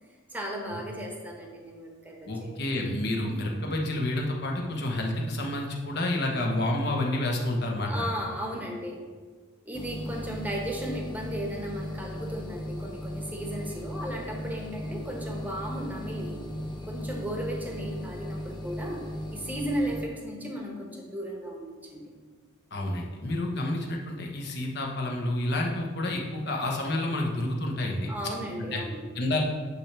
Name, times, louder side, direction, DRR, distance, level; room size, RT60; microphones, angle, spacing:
voice 1, 0.3-2.6 7.8-9.0 9.6-16.4 16.9-22.1 28.1-29.0, equal, 10° right, 0 dB, 1.1 m, -35 dB
voice 2, 2.2-8.1 22.7-28.1 28.7-28.8 29.1-29.4, left 1 dB, 55° left, 0 dB, 1.2 m, -29 dB
sound 1, 9.7-20.1, equal, 20° left, 0.7 m, -37 dB
9.4 x 3.4 x 6.1 m, 1.5 s
head